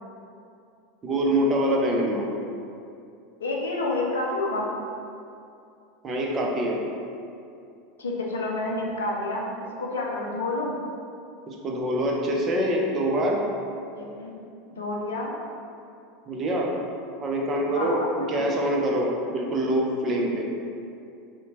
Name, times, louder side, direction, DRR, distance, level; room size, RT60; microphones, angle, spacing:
voice 1, 1.0-2.3 6.0-6.8 11.5-13.4 16.3-16.7 17.2-20.5, right 1 dB, 35° right, -1 dB, 0.4 m, -25 dB
voice 2, 3.4-4.7 8.0-9.5 9.8-10.7 14.0-14.4 14.7-15.3 17.7-18.6, left 2 dB, 80° left, -2 dB, 0.4 m, -29 dB
2.7 x 2.1 x 2.8 m, 2.5 s
hypercardioid pair, 80°, 0 cm